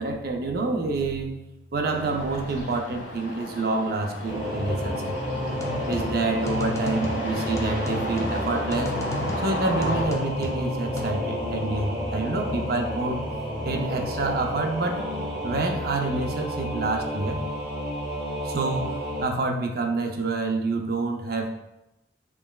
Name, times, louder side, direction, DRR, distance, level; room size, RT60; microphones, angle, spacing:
voice 1, 0.0-1.4 1.7-5.2 5.9-9.0 9.4-13.2 13.6-15.1 15.4-17.5 18.4-21.5, right 3 dB, 60° right, 4 dB, 0.6 m, -27 dB
sound 1, 1.9-10.0, equal, 85° left, 1.3 m, -34 dB
Singing / Musical instrument, 4.2-19.3, equal, 5° right, 1.1 m, -31 dB
sound 2, 5.5-11.0, left 2 dB, 15° left, 0.5 m, -35 dB
5.9 x 3.1 x 2.3 m, 0.92 s
head